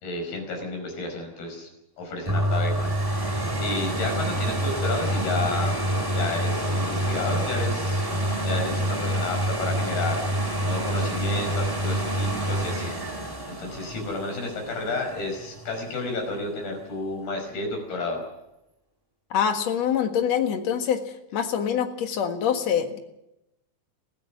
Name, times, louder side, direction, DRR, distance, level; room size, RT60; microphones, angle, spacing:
voice 1, 0.0-1.7 2.0-3.2 3.6-5.8 6.2-8.1 8.4-18.2, left 3 dB, 75° left, 3 dB, 7.1 m, -32 dB
sound 1, 2.3-15.9 16.5-16.6, right 1 dB, 10° right, 0.9 m, -27 dB
voice 2, 19.3-21.0 21.3-23.0, left 8 dB, 55° left, 5 dB, 2.4 m, -25 dB
23.5 x 15.5 x 7.2 m, 0.89 s
omnidirectional pair, 4.5 m